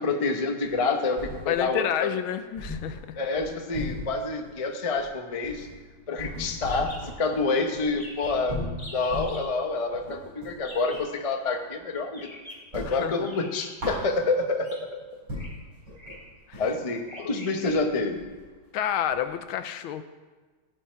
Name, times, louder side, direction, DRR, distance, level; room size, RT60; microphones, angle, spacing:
voice 1, 0.0-2.1 3.2-5.7 6.1-12.3 12.7-15.2 16.6-18.3, left 3 dB, 35° left, 4 dB, 0.5 m, -28 dB
sound 1, 0.6-1.8 2.1-2.2 2.6-11.2 11.5-12.3 12.6-14.6 15.0-15.1 15.3-19.4, left 1 dB, 60° right, 5.6 m, -38 dB
voice 2, 1.5-3.0 12.8-13.3 16.5-16.6 18.7-20.0, left 9 dB, 80° left, 10 dB, 1.5 m, -29 dB
sound 2, 6.6-7.0 7.3-7.4 7.6-7.7 7.9-8.4 8.8-9.4 10.6-11.1 12.1-12.7 13.2-13.9 14.6-14.8 15.3-15.5 15.9-16.3 17.0-17.7, left 1 dB, 15° left, 2.0 m, -44 dB
15.5 x 8.5 x 4.5 m, 1.3 s
omnidirectional pair, 2.3 m